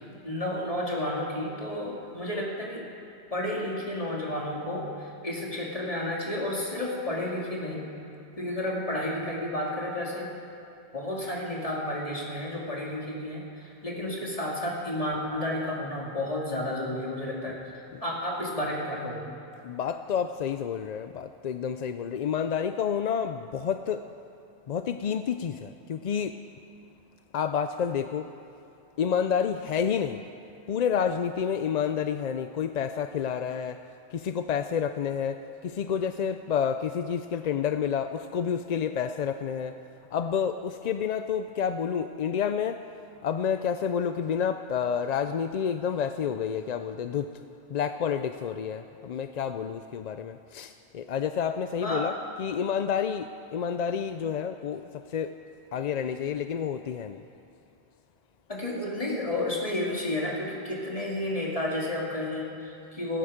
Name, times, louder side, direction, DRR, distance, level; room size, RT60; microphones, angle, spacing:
voice 1, 0.2-2.8 3.3-7.8 8.4-10.3 10.9-17.6 18.0-19.4 51.8-52.1 58.5-63.2, left 1 dB, 35° left, -3 dB, 2.6 m, -31 dB
voice 2, 19.6-24.0 24.7-26.4 27.3-28.3 29.0-30.2 30.7-33.8 34.1-39.7 40.1-42.8 43.2-47.4 47.7-55.3 55.7-57.2, left 7 dB, 55° left, 9 dB, 0.5 m, -29 dB
17.5 x 15.0 x 5.0 m, 2.6 s
omnidirectional pair, 1.1 m